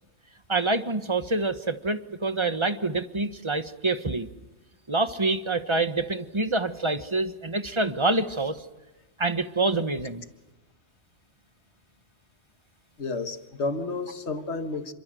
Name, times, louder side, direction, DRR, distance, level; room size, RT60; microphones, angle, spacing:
voice 1, 0.5-4.3 4.9-8.6 9.2-10.2, right 2 dB, 25° right, 10 dB, 1.3 m, -26 dB
voice 2, 13.0-14.9, left 3 dB, 70° left, 8 dB, 2.0 m, -31 dB
28.0 x 24.5 x 7.7 m, 1.1 s
omnidirectional pair, 1.2 m